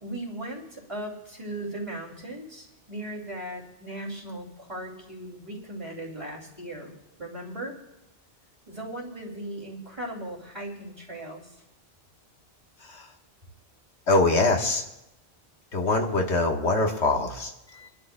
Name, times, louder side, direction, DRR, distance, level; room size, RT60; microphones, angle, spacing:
voice 1, 0.0-7.8 8.7-11.6, right 1 dB, 30° right, -1 dB, 2.6 m, -38 dB
voice 2, 14.1-14.9 15.7-17.9, left 2 dB, 80° left, 2 dB, 1.7 m, -24 dB
28.5 x 11.5 x 2.2 m, 0.90 s
omnidirectional pair, 1.1 m